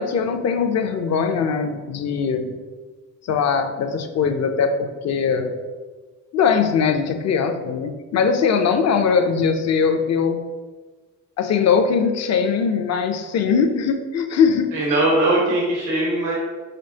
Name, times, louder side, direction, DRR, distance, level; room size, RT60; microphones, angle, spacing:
voice 1, 0.0-2.6 3.2-5.6 6.3-10.4 11.4-15.0, left 6 dB, 60° left, 6 dB, 0.6 m, -21 dB
voice 2, 14.7-16.3, right 2 dB, 85° right, -3 dB, 1.2 m, -20 dB
5.1 x 3.7 x 2.8 m, 1.4 s
cardioid pair, 90°, 30 cm